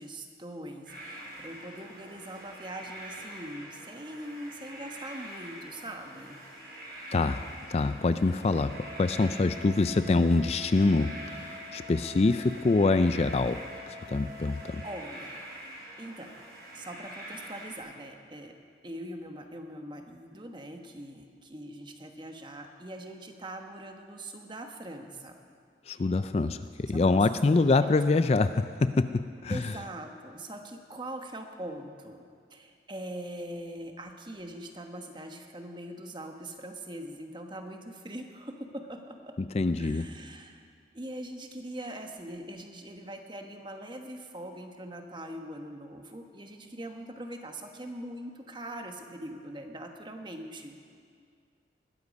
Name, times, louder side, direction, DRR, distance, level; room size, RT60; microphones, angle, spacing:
voice 1, 0.0-6.4 14.8-15.3 16.0-16.3 16.7-18.5 18.8-25.4 25.9-26.1 26.9-27.9 29.5-32.2 32.5-39.3 39.8-40.7 40.9-50.8, right 1 dB, 25° right, 4 dB, 1.2 m, -42 dB
sound 1, 0.9-17.8, right 1 dB, 55° right, 5.1 m, -45 dB
voice 2, 7.1-7.4 7.7-13.6 14.1-14.8 25.9-29.7 39.5-40.1, left 3 dB, 35° left, 11 dB, 0.4 m, -25 dB
Wind instrument woodwind instrument, 8.7-15.1, left 1 dB, 80° right, 2.6 m, -47 dB
20.0 x 13.5 x 5.3 m, 2.2 s
head